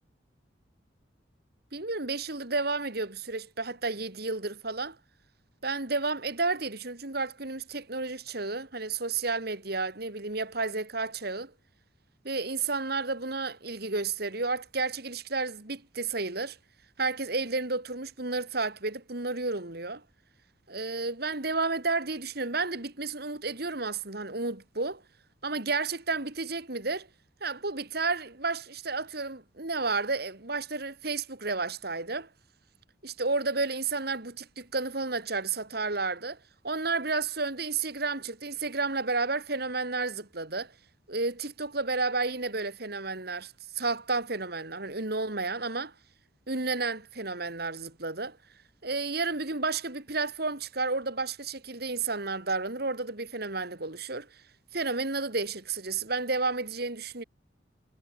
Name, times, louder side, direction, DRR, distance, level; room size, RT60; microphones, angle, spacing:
voice 1, 1.7-5.0 5.6-11.5 12.2-16.6 17.0-20.0 20.7-25.0 25.4-27.1 27.4-32.3 33.0-36.4 36.6-40.7 41.1-45.9 46.5-48.4 48.8-54.3 54.7-57.2, right 3 dB, 55° right, 2.7 m, -31 dB
head